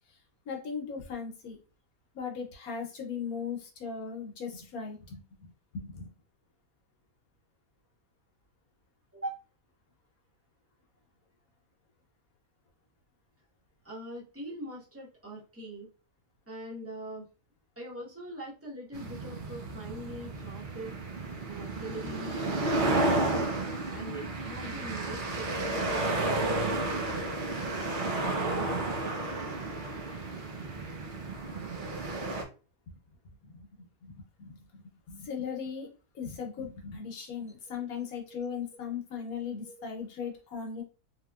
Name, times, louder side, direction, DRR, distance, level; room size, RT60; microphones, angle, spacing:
voice 1, 0.5-1.6 2.1-6.1 31.5-31.6 32.9-33.0 33.4-33.7 34.0-35.9 36.1-40.8, left 6 dB, 70° left, 2 dB, 1.3 m, -38 dB
voice 2, 13.8-15.9 16.5-17.2 17.8-20.9 21.5-23.5 23.9-26.2 26.6-27.1 37.7-37.8 39.6-39.7, right 1 dB, 10° right, -4 dB, 0.8 m, -42 dB
sound 1, 18.9-32.4, right 2 dB, 75° right, 0.4 m, -32 dB
3.2 x 2.9 x 2.3 m, 0.34 s
omnidirectional pair, 1.7 m